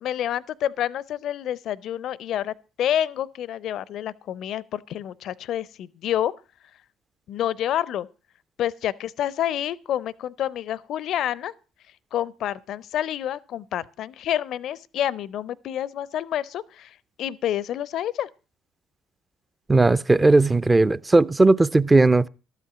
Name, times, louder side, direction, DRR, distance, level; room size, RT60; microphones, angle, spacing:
voice 1, 0.0-6.3 7.3-8.1 8.6-11.5 12.1-18.3, left 11 dB, 50° left, 0.5 m, -28 dB
voice 2, 19.7-22.3, right 2 dB, 15° right, 0.5 m, -17 dB
13.0 x 8.2 x 5.9 m
figure-of-eight pair, 50°, 0 cm